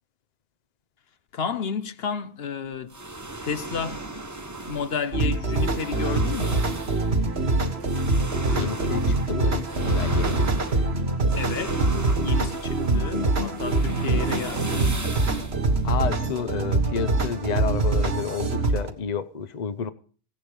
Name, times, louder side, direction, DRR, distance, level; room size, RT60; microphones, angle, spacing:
voice 1, 1.3-2.9 3.4-4.0 4.7-6.6 11.3-11.9 12.2-15.0, left 6 dB, 70° left, 1.1 m, -31 dB
sound 1, 2.9-16.8, right 2 dB, 15° right, 1.1 m, -37 dB
sound 2, 5.1-18.9, right 2 dB, 85° right, 1.9 m, -24 dB
voice 2, 8.5-10.6 15.8-19.9, left 6 dB, 45° left, 0.9 m, -30 dB
16.5 x 10.5 x 5.3 m
omnidirectional pair, 1.1 m